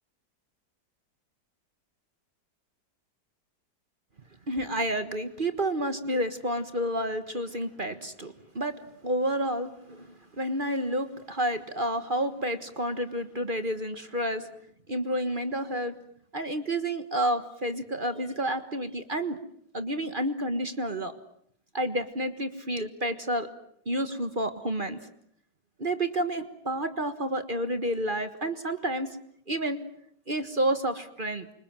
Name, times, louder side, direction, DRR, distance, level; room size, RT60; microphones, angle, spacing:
voice 1, 4.5-14.5 14.9-15.9 16.3-19.4 19.7-21.1 21.7-23.5 23.8-25.0 25.8-29.2 29.5-29.8 30.3-31.5, right 1 dB, 30° right, 9 dB, 1.5 m, -30 dB
28.5 x 26.0 x 7.5 m, 0.69 s
omnidirectional pair, 1.8 m